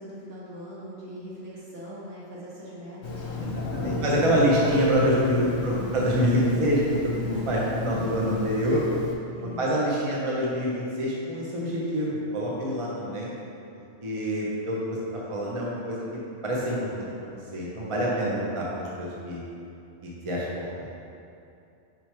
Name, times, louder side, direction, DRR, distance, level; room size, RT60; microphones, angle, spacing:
voice 1, 0.0-4.8 5.6-6.3 7.2-7.4 9.4-9.6, equal, 65° right, -8 dB, 1.9 m, -41 dB
Telephone, 3.0-9.2, left 2 dB, 65° left, 1.0 m, -31 dB
voice 2, 3.4-8.8 9.4-13.3 14.0-16.0 16.4-19.4 20.0-20.5 20.8-20.9, equal, 30° right, -5 dB, 0.8 m, -26 dB
6.1 x 5.3 x 3.4 m, 2.6 s
omnidirectional pair, 1.3 m